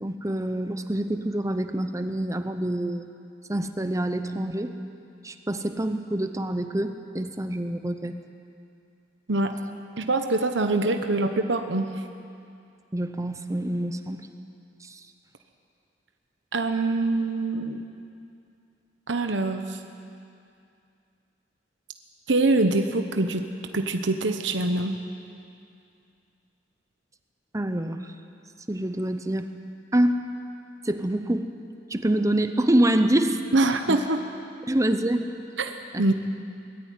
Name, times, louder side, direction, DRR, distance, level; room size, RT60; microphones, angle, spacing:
voice 1, 0.0-3.1 3.5-4.7 5.2-8.2 12.9-14.3 14.8-15.0 27.5-28.0 28.7-29.5 29.9-30.2 30.8-31.5 31.9-33.4 33.9-34.0 34.7-35.2 35.9-36.1, right 1 dB, 20° right, 8 dB, 0.9 m, -26 dB
voice 2, 9.3-9.6 10.0-11.9 16.5-17.8 19.1-19.8 22.3-23.5 23.7-25.0 33.5-34.2 35.6-36.1, right 2 dB, 80° right, 6 dB, 1.1 m, -24 dB
20.5 x 14.0 x 9.3 m, 2.5 s
head